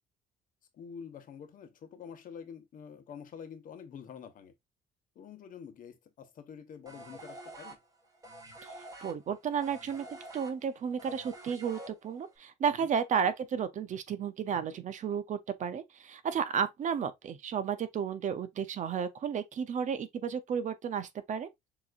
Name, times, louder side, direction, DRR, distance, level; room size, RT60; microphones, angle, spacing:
voice 1, 0.7-4.5 5.1-7.8 12.7-12.9, left 7 dB, 55° left, 1.1 m, -47 dB
sound 1, 6.9-12.4, right 1 dB, 20° right, 1.5 m, -48 dB
voice 2, 9.0-21.5, right 7 dB, 45° right, 0.7 m, -33 dB
6.8 x 2.9 x 2.5 m
cardioid pair, 110°, 17 cm